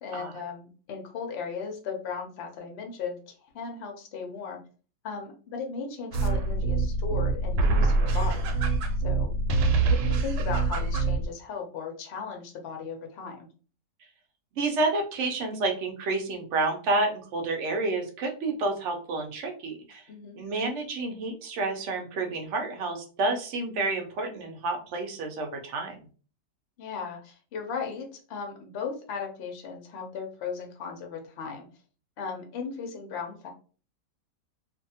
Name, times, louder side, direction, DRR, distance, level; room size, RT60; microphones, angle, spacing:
voice 1, 0.0-4.6 5.0-8.4 9.0-9.3 9.8-13.5 20.1-20.4 26.8-31.7 32.2-33.5, left 5 dB, 60° left, 2 dB, 0.7 m, -37 dB
sound 1, 6.1-11.3, right 3 dB, 85° right, 1.2 m, -25 dB
voice 2, 14.6-20.0 20.4-26.0, right 3 dB, 65° right, 3 dB, 0.7 m, -29 dB
2.6 x 2.5 x 2.7 m, 0.38 s
omnidirectional pair, 1.9 m